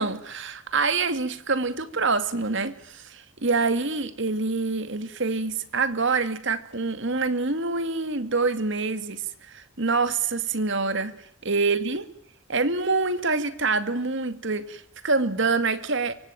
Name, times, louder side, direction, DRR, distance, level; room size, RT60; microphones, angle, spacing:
voice 1, 0.0-11.1 11.4-12.1 12.5-16.1, right 3 dB, 60° right, 2.3 m, -26 dB
25.5 x 24.5 x 9.1 m
head